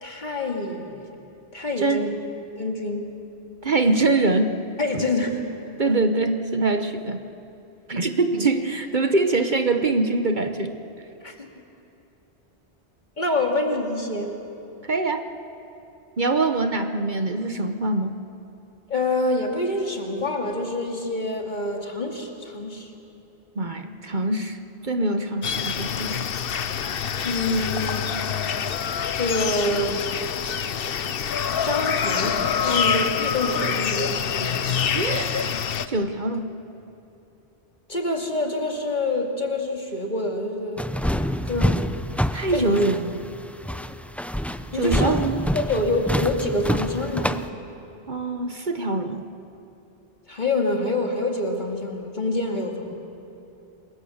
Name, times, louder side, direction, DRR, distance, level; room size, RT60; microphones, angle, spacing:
voice 1, 0.0-1.1 1.5-2.1 2.6-3.1 4.8-5.4 5.8-5.9 11.2-11.5 13.2-14.4 18.9-22.9 27.2-28.2 29.1-30.0 31.6-34.7 37.9-40.8 41.4-41.8 42.5-42.8 44.7-45.1 45.5-47.4 50.3-52.9, left 2 dB, 45° left, 2 dB, 2.5 m, -26 dB
voice 2, 3.6-4.6 4.9-5.0 5.8-7.2 7.9-10.8 14.8-15.3 16.2-18.2 23.6-24.6 24.8-26.3 34.9-35.5 35.9-36.4 42.3-43.3 44.7-45.4 48.1-49.3, right 2 dB, 50° right, 7 dB, 1.2 m, -23 dB
sound 1, 25.4-35.9, left 7 dB, 60° left, 0.9 m, -26 dB
sound 2, 40.8-47.5, equal, ahead, 0.5 m, -27 dB
27.5 x 22.5 x 7.2 m, 2.9 s
omnidirectional pair, 1.1 m